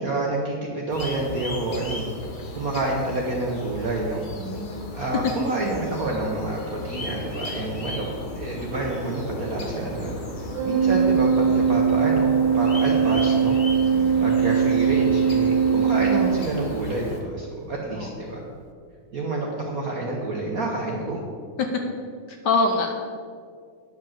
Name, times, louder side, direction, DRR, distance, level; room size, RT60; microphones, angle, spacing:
voice 1, 0.0-2.1 2.5-4.3 4.9-8.0 8.3-10.2 10.6-13.6 14.2-18.4 19.1-21.2, right 2 dB, 55° right, -1 dB, 1.2 m, -28 dB
sound 1, 0.9-17.2, left 1 dB, 40° left, 0.7 m, -36 dB
voice 2, 4.3-5.1 13.8-14.1 17.9-18.1 22.3-22.9, left 3 dB, 65° left, 3 dB, 1.2 m, -26 dB
Organ, 10.6-17.1, right 6 dB, 80° right, 0.9 m, -21 dB
9.4 x 5.2 x 7.3 m, 2.1 s
omnidirectional pair, 2.4 m